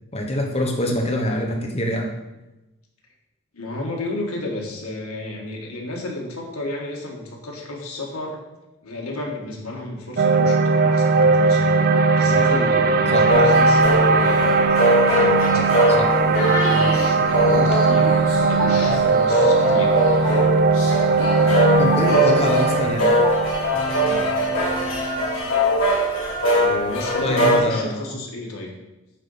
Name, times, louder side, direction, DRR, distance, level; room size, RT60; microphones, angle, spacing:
voice 1, 0.1-2.1 13.1-13.3 16.0-16.1 21.8-23.1 27.2-28.1, left 1 dB, 30° left, 1 dB, 1.2 m, -24 dB
voice 2, 3.5-8.4 8.8-14.6 15.0-20.0 21.0-22.3 23.9-24.3 24.9-25.0 26.5-28.8, left 2 dB, 90° left, -1 dB, 1.8 m, -32 dB
sound 1, 10.2-26.4, right 4 dB, 45° right, 0.4 m, -19 dB
sound 2, 13.3-27.6, equal, 60° left, 2.2 m, -22 dB
Piano, 18.6-25.4, equal, 5° left, 1.1 m, -34 dB
8.7 x 4.0 x 5.6 m, 1.0 s
head